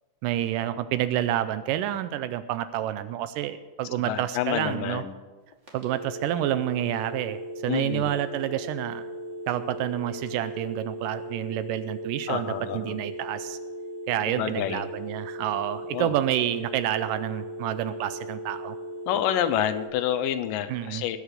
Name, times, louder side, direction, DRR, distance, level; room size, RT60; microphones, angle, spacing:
voice 1, 0.2-5.0 5.7-9.1 9.5-13.6 14.1-18.8 20.7-21.0, right 12 dB, 80° right, 13 dB, 2.0 m, -29 dB
voice 2, 4.0-5.1 7.7-8.1 12.3-13.0 14.3-14.8 15.9-16.2 19.1-21.2, left 11 dB, 80° left, 12 dB, 2.3 m, -28 dB
sound 1, 5.7-19.9, right 1 dB, 25° right, 1.9 m, -37 dB
19.0 x 6.7 x 6.6 m, 1.4 s
omnidirectional pair, 4.0 m